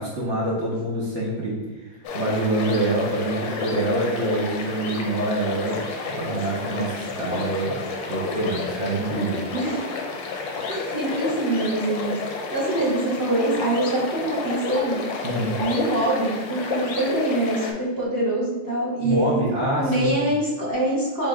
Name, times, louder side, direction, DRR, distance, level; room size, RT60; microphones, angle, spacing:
voice 1, 0.0-1.6 1.9-7.8 8.1-9.4 15.2-15.6 19.0-20.1, right 1 dB, 80° right, -5 dB, 0.6 m, -26 dB
sound 1, 2.0-17.7, left 4 dB, 70° left, 1.2 m, -31 dB
voice 2, 9.5-9.8 10.7-12.2 12.5-15.0 15.6-19.4 19.8-21.3, right 1 dB, 20° right, -7 dB, 0.6 m, -24 dB
6.4 x 3.1 x 2.4 m, 1.2 s
omnidirectional pair, 2.4 m